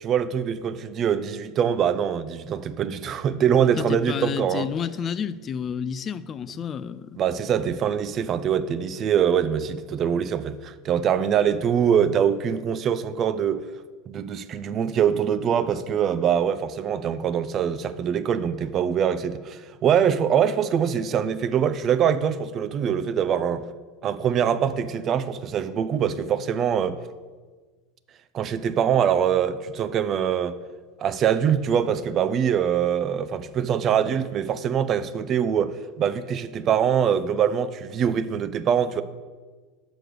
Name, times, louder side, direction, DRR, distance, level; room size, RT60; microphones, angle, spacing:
voice 1, 0.0-4.7 7.2-13.7 14.1-23.7 24.0-27.0 28.3-30.6 31.0-39.0, right 8 dB, 40° right, 0.5 m, -23 dB
voice 2, 3.6-7.2, left 7 dB, 35° left, 0.3 m, -30 dB
6.1 x 5.0 x 6.6 m
hypercardioid pair, 90°, 0 cm